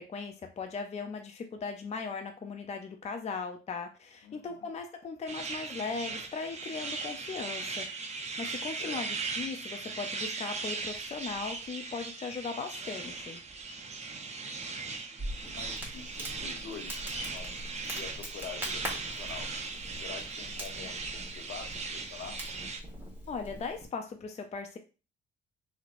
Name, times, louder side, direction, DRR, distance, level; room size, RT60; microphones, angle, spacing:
voice 1, 0.0-7.9 8.4-13.4 23.3-24.8, left 4 dB, 35° left, 5 dB, 0.5 m, -38 dB
voice 2, 4.2-4.7 8.8-9.0 14.3-19.5 20.0-22.4, left 6 dB, 70° left, 4 dB, 0.8 m, -47 dB
sound 1, 5.3-22.8, right 4 dB, 35° right, 0.6 m, -38 dB
Crackle, 15.2-23.9, right 1 dB, 10° right, 1.3 m, -43 dB
3.1 x 2.7 x 2.5 m, 0.33 s
cardioid pair, 90°, 20 cm